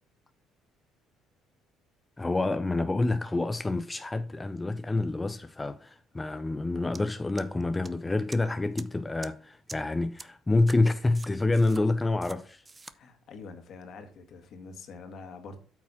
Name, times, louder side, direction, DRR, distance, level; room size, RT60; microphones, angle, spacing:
voice 1, 2.2-12.6, left 2 dB, 20° left, 0.6 m, -28 dB
sound 1, 6.9-7.0 7.4-7.9 8.3-8.4 8.8-8.9 9.2-9.3 9.7-9.8 10.2-10.3 10.7-10.8 11.1-11.8 12.2-12.4 12.6-12.9, right 3 dB, 25° right, 0.7 m, -44 dB
voice 2, 12.9-15.6, left 4 dB, 60° left, 2.0 m, -45 dB
8.5 x 6.1 x 4.3 m
hypercardioid pair, 65°, 0 cm